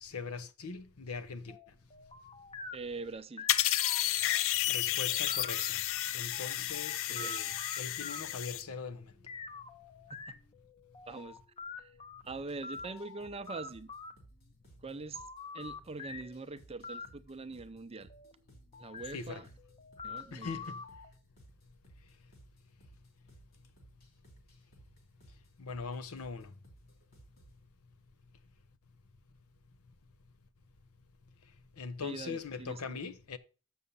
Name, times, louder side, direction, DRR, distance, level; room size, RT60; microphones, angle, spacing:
voice 1, 0.0-1.6 4.7-5.8 6.1-9.1 19.1-19.4 20.3-20.8 25.6-26.5 31.8-33.4, left 4 dB, 80° left, 0.8 m, -41 dB
sound 1, 1.5-4.4 4.9-8.4 9.3-12.2 12.6-14.1 15.2-16.4 16.8-17.1 18.1-18.3 18.7-19.2 19.6-21.1, left 3 dB, 25° left, 0.7 m, -46 dB
voice 2, 2.7-3.5 7.1-7.4 10.1-10.4 11.1-11.4 11.8-11.9 12.2-13.9 14.8-15.3 15.5-18.1 18.8-19.5 20.0-20.6 32.0-33.0, right 3 dB, 25° right, 0.6 m, -43 dB
sound 2, 3.5-8.6, left 13 dB, 65° left, 0.4 m, -32 dB
sound 3, 12.2-27.6, right 2 dB, 45° left, 2.9 m, -61 dB
6.9 x 6.4 x 5.5 m
head